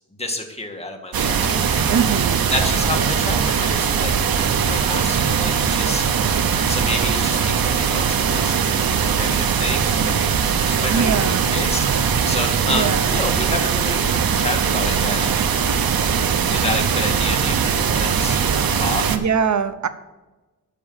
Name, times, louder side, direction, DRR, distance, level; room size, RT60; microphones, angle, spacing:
voice 1, 0.2-1.9 2.5-6.3 6.7-8.6 8.8-14.0 14.3-15.6 16.5-18.4 18.7-19.2, left 2 dB, 15° left, 3 dB, 2.0 m, -30 dB
sound 1, 1.1-19.2, right 7 dB, 80° right, 0.9 m, -20 dB
voice 2, 1.9-2.5 10.9-11.5 12.7-13.1 19.1-19.9, right 6 dB, 55° right, 12 dB, 0.9 m, -22 dB
10.0 x 6.2 x 7.3 m, 1.1 s
cardioid pair, 80°, 35 cm